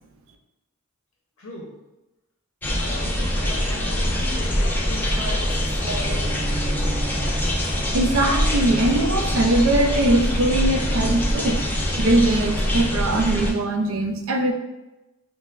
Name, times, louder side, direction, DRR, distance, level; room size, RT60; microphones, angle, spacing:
voice 1, 1.4-1.7 2.8-6.4, left 1 dB, 70° left, -3 dB, 0.6 m, -38 dB
sound 1, 2.6-13.5, equal, 10° left, 0.4 m, -24 dB
sound 2, 4.5-10.7, equal, 30° right, 1.2 m, -41 dB
Bowed string instrument, 5.9-12.6, right 3 dB, 50° right, 0.9 m, -37 dB
voice 2, 7.9-11.6 12.0-14.5, right 1 dB, 70° right, 5 dB, 0.4 m, -21 dB
5.5 x 2.0 x 2.4 m, 1.0 s
head